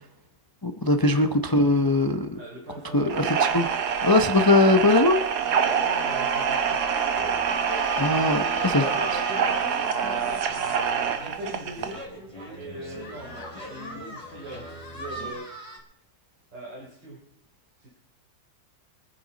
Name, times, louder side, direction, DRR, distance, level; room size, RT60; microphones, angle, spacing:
voice 1, 0.6-2.4 2.9-3.7 4.0-5.2 8.0-8.8, left 2 dB, 30° left, 7 dB, 0.4 m, -21 dB
voice 2, 2.4-3.2 5.4-6.9 8.7-10.7 11.2-12.0 12.4-15.7 16.5-17.2 17.8-17.9, right 1 dB, 85° right, -3 dB, 4.4 m, -40 dB
sound 1, 3.1-12.0, right 7 dB, 65° right, 1.5 m, -26 dB
sound 2, 7.1-15.3, equal, 15° right, 2.9 m, -43 dB
sound 3, 7.6-11.0 11.5-11.6 11.9-12.0 13.0-15.8, left 1 dB, 45° left, 4.5 m, -41 dB
24.0 x 9.6 x 4.1 m, 0.68 s
omnidirectional pair, 1.9 m